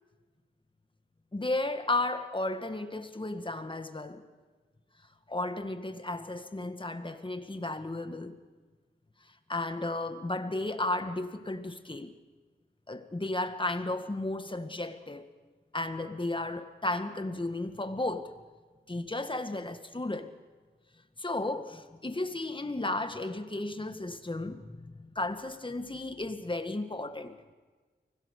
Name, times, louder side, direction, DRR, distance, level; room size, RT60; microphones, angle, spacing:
voice 1, 1.3-4.2 5.3-8.4 9.5-12.1 12.9-15.3 15.7-18.3 18.9-20.3 21.2-27.4, left 2 dB, 25° left, 1.8 m, -34 dB
24.5 x 17.0 x 6.7 m
cardioid pair, 40°, 19 cm